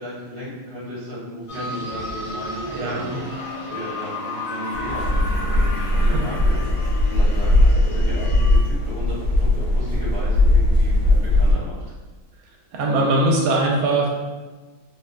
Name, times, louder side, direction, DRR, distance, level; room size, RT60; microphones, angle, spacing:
voice 1, 0.0-11.8, equal, 20° right, -10 dB, 0.6 m, -35 dB
sound 1, 1.5-8.6, left 2 dB, 40° left, 0.5 m, -32 dB
voice 2, 2.7-3.2 6.0-6.2 12.7-14.1, right 2 dB, 80° right, -2 dB, 1.4 m, -21 dB
sound 2, 4.7-11.5, left 1 dB, 65° left, 1.1 m, -19 dB
3.8 x 2.1 x 2.2 m, 1.3 s
omnidirectional pair, 2.3 m